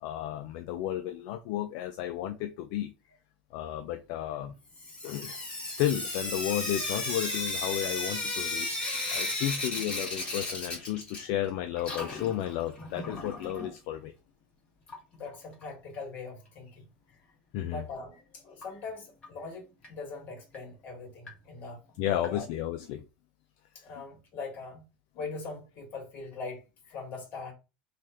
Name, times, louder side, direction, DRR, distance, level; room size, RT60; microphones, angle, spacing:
voice 1, 0.0-2.9 3.5-4.5 5.0-8.8 9.1-14.1 17.5-17.8 22.0-23.0, left 12 dB, 65° left, 0.3 m, -33 dB
Sink (filling or washing) / Drip, 4.7-11.5 11.7-13.7 14.9-15.0 15.3-15.4 15.6-15.7 18.6-18.7 19.2-19.3 19.8-19.9 20.5-20.6 21.3-21.4 22.2-22.3, left 2 dB, 25° left, 1.5 m, -34 dB
voice 2, 15.1-16.9 17.7-22.5 23.8-24.8 25.2-26.6 26.9-27.5, left 4 dB, 40° left, 1.6 m, -41 dB
3.2 x 2.3 x 2.9 m
supercardioid pair, 120°, 4 cm